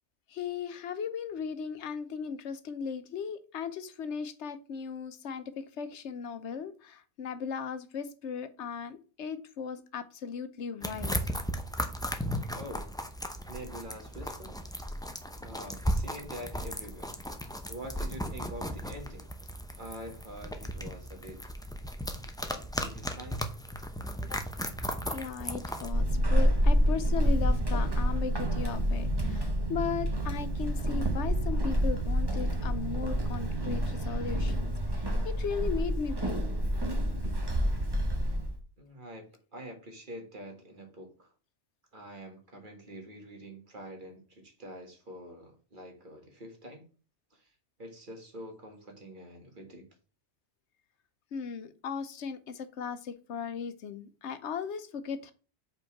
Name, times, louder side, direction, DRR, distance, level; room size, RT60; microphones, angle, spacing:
voice 1, 0.3-11.2 22.4-22.6 24.2-24.4 25.1-34.7 35.2-36.5 37.2-37.3 51.3-55.3, left 6 dB, 80° left, 11 dB, 1.1 m, -37 dB
sound 1, 10.8-25.9, equal, 5° left, 0.5 m, -36 dB
voice 2, 12.5-12.9 13.5-14.5 15.4-17.1 17.7-19.3 19.8-21.5 22.5-23.4 38.8-41.3 41.9-46.8 47.3-47.5 47.8-49.9, equal, 45° right, 3 dB, 1.7 m, -45 dB
Walk footsteps / Squeak, 25.9-38.6, equal, 25° right, 1.0 m, -28 dB
5.3 x 4.4 x 5.8 m, 0.37 s
omnidirectional pair, 1.2 m